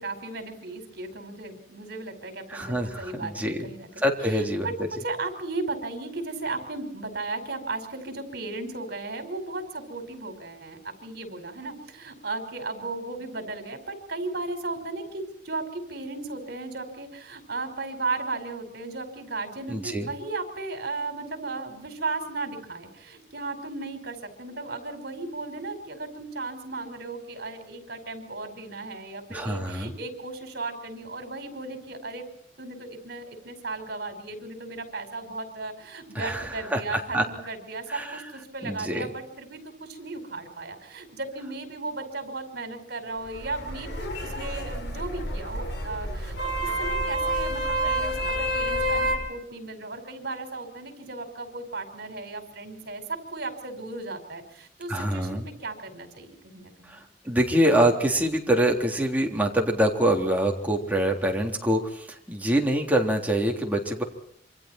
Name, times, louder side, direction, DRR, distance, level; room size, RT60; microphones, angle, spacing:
voice 1, 0.0-32.2 32.6-57.0, right 3 dB, 65° right, 7 dB, 5.2 m, -35 dB
voice 2, 2.5-3.7 4.0-4.7 19.7-20.1 29.3-29.9 36.2-36.8 37.1-37.2 37.9-38.2 38.6-39.1 54.9-55.5 56.9-64.0, right 1 dB, 10° right, 0 dB, 3.6 m, -25 dB
sound 1, 43.2-49.2, right 1 dB, 70° left, 6.9 m, -29 dB
27.5 x 25.5 x 4.5 m, 0.66 s
head